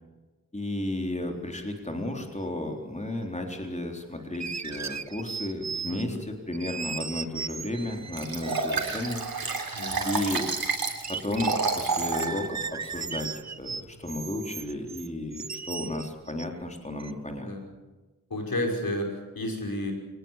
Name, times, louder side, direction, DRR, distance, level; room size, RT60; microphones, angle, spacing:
voice 1, 0.5-9.2 10.0-10.5 11.1-13.3 13.6-17.5, left 1 dB, 20° left, 2 dB, 3.8 m, -33 dB
sound 1, 4.3-6.2 6.5-9.1 9.7-10.4 10.7-10.8 11.0-16.6 17.0-17.1, right 6 dB, 50° right, 0.8 m, -37 dB
voice 2, 5.9-6.2 9.8-10.1 17.4-17.7 18.3-19.9, left 1 dB, 75° left, 2 dB, 5.8 m, -31 dB
Liquid, 8.2-12.3 12.8-12.9, right 4 dB, 90° right, 3.6 m, -29 dB
24.5 x 19.5 x 7.4 m, 1.2 s
wide cardioid pair, 50°, 35 cm